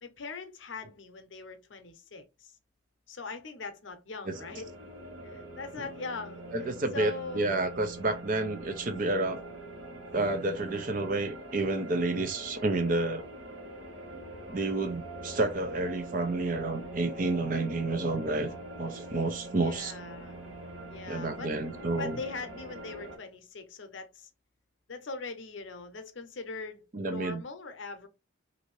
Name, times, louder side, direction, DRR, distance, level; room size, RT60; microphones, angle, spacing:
voice 1, 0.0-2.5 3.1-4.7 5.2-7.5 19.5-20.4 20.9-24.3 24.9-28.1, left 3 dB, 80° left, 0.7 m, -41 dB
sound 1, 4.3-23.2, right 1 dB, 80° right, 1.3 m, -44 dB
voice 2, 6.5-9.5 10.1-13.3 14.5-18.5 18.8-19.9 21.1-22.2 26.9-27.4, right 2 dB, 45° right, 0.6 m, -30 dB
2.7 x 2.7 x 3.0 m
head